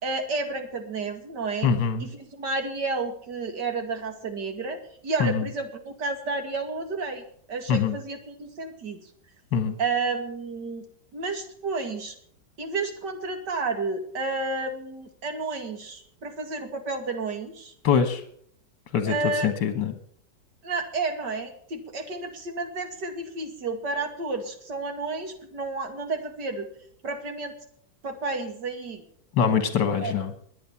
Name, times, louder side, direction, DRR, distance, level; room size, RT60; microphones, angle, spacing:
voice 1, 0.0-1.7 2.0-7.2 7.5-9.1 9.8-10.8 11.1-12.1 12.6-17.7 19.0-19.5 20.6-26.7 27.0-27.5 28.0-29.0 30.0-30.1, right 3 dB, 65° right, 6 dB, 2.9 m, -31 dB
voice 2, 1.6-2.1 5.2-5.5 7.7-8.0 9.5-9.7 17.8-18.2 18.9-19.1 19.4-19.9 29.3-30.3, left 6 dB, 70° left, 9 dB, 2.1 m, -23 dB
22.0 x 8.6 x 7.2 m, 0.64 s
omnidirectional pair, 2.0 m